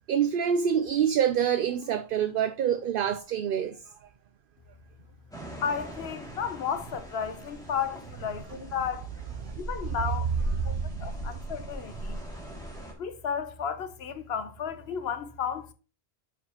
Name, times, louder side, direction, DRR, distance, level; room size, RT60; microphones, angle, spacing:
voice 1, 0.1-3.8 9.4-9.5 10.7-11.3, right 8 dB, 65° right, 0.7 m, -26 dB
sound 1, 5.3-12.9, right 1 dB, 5° left, 2.5 m, -39 dB
voice 2, 5.6-12.2 13.0-15.7, left 7 dB, 75° left, 1.1 m, -33 dB
8.7 x 5.4 x 2.9 m
omnidirectional pair, 1.1 m